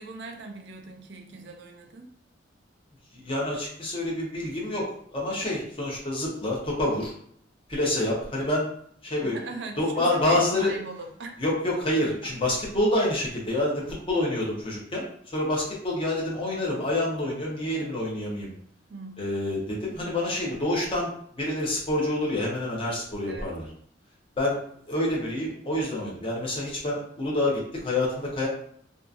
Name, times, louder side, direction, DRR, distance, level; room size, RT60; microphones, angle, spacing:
voice 1, 0.0-2.1 9.2-11.4 18.9-19.2 23.3-23.5, right 3 dB, 65° right, 4 dB, 0.4 m, -40 dB
voice 2, 3.1-4.9 5.1-7.1 7.7-8.7 9.0-9.4 9.8-10.7 11.4-15.1 15.3-18.5 19.2-23.6 24.4-24.6 24.9-28.5, left 1 dB, 30° left, -4 dB, 0.8 m, -27 dB
2.8 x 2.4 x 2.4 m, 0.62 s
head